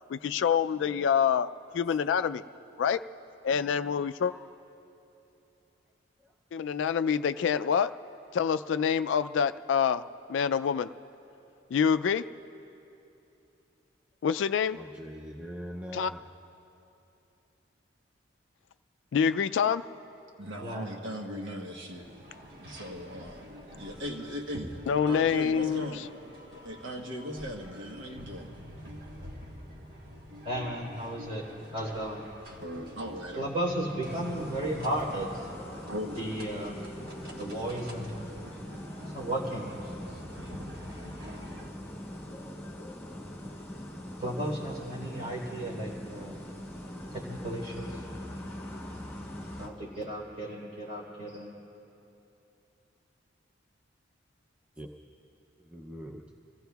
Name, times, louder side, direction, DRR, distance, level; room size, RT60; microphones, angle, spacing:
voice 1, 0.1-1.5 1.7-2.4 2.8-3.0 3.4-4.3 6.5-7.9 8.3-10.0 10.3-10.9 11.7-12.2 14.2-14.8 15.9-16.1 19.1-19.8 24.9-26.0, left 7 dB, 75° left, 12 dB, 0.3 m, -26 dB
voice 2, 14.7-16.2 54.8-54.9 55.6-56.2, equal, 5° right, 0 dB, 0.5 m, -42 dB
voice 3, 20.4-22.1 22.6-26.0 26.5-28.5 32.6-33.5 35.9-36.5, equal, 80° right, 2 dB, 1.2 m, -39 dB
sound 1, 21.9-41.7, equal, 50° right, 1.5 m, -48 dB
voice 4, 30.4-31.4 31.7-32.3 33.4-35.5 36.2-36.8 37.3-38.2 39.1-39.7 44.2-46.3 47.1-48.0 49.6-51.5, right 1 dB, 30° right, -5 dB, 3.6 m, -34 dB
sound 2, 34.1-49.7, left 1 dB, 10° left, 1.5 m, -42 dB
28.0 x 16.0 x 2.3 m, 2.9 s
head